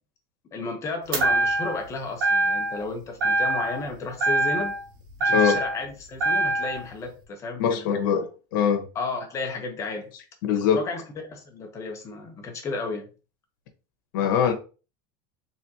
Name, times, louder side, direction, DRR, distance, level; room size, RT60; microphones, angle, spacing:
voice 1, 0.5-4.7 5.2-8.2 8.9-10.1 10.7-11.0 11.3-13.1, left 3 dB, 25° left, 1.0 m, -33 dB
sound 1, 1.1-1.9 2.2-2.9 3.2-3.9 4.2-5.8 6.2-6.8, right 2 dB, 85° right, 1.8 m, -24 dB
voice 2, 7.6-8.2 8.5-8.8 10.4-10.8 14.1-14.5, left 8 dB, 80° left, 1.3 m, -22 dB
4.2 x 3.7 x 2.9 m
supercardioid pair, 150°, 11 cm